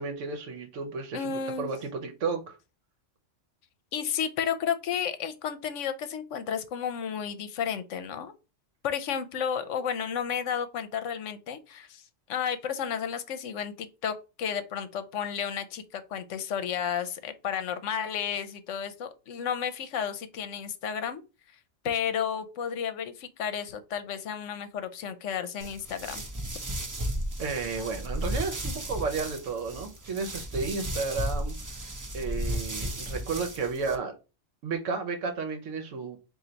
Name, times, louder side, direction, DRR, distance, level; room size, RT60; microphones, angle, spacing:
voice 1, 0.0-2.6 27.4-31.8 32.1-34.1 34.6-36.2, right 4 dB, 75° right, 1.1 m, -33 dB
voice 2, 1.1-1.8 3.9-8.3 8.8-21.2 21.8-26.2, left 8 dB, 75° left, 0.9 m, -32 dB
sound 1, 25.6-33.9, right 1 dB, 30° right, 0.4 m, -34 dB
4.4 x 2.6 x 3.8 m
omnidirectional pair, 1.3 m